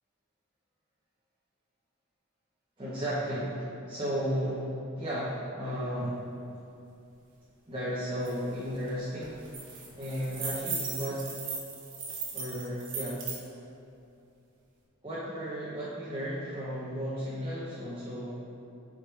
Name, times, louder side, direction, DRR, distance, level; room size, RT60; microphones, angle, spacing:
voice 1, 2.8-6.3 7.7-9.4 9.9-11.3 12.3-13.2 15.0-18.4, equal, 25° right, -9 dB, 1.0 m, -34 dB
sound 1, 8.2-8.3 8.7-8.9 9.2-13.4, right 5 dB, 60° right, 1.1 m, -37 dB
7.8 x 5.0 x 3.3 m, 2.7 s
head